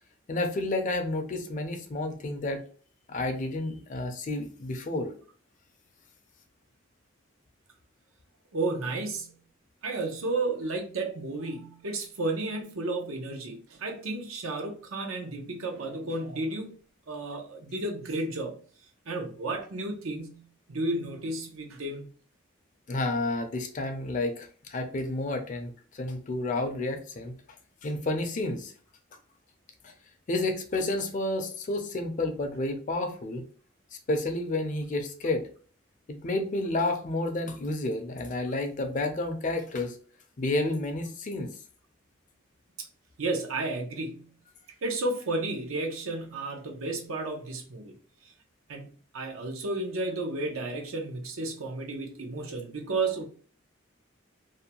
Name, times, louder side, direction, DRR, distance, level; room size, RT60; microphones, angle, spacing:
voice 1, 0.3-2.6 3.1-5.1 22.9-27.3 27.8-28.7 29.8-29.9 30.3-33.4 34.1-35.5 36.1-39.9 40.4-41.5, left 2 dB, 40° left, 0.4 m, -30 dB
voice 2, 8.5-9.3 9.8-16.7 17.1-18.5 19.1-20.4 20.7-22.1 43.2-44.3 44.8-47.9 48.7-48.9 49.1-53.2, right 2 dB, 90° right, 0.7 m, -32 dB
2.6 x 2.2 x 2.8 m
head